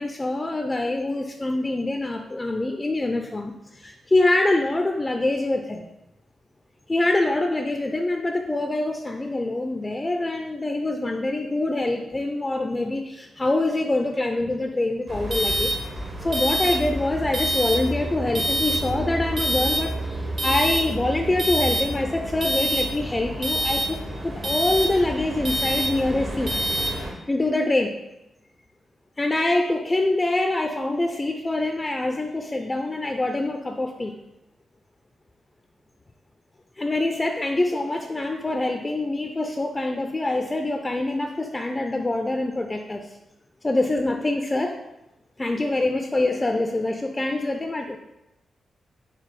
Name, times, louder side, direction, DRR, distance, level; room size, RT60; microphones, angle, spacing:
voice 1, 0.0-5.8 6.9-15.7 16.2-26.6 27.3-27.9 29.2-34.2 36.8-43.0 43.6-44.8 45.4-48.0, left 2 dB, 25° left, 4 dB, 0.3 m, -25 dB
sound 1, 15.1-27.1, right 1 dB, 50° right, 1.0 m, -27 dB
4.5 x 2.0 x 4.0 m, 0.91 s
cardioid pair, 65°, 0 cm